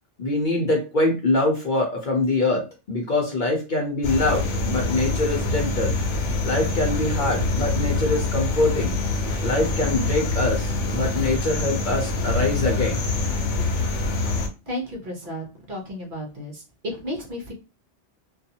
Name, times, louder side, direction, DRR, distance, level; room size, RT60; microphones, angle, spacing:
voice 1, 0.2-5.9 6.4-9.0 9.4-13.0 13.6-13.7, left 2 dB, 50° left, 0 dB, 0.7 m, -24 dB
sound 1, 4.0-14.5, left 2 dB, 85° left, 0.9 m, -25 dB
voice 2, 14.7-17.5, left 1 dB, 50° right, 0 dB, 0.8 m, -33 dB
2.5 x 2.3 x 2.8 m, 0.29 s
omnidirectional pair, 1.2 m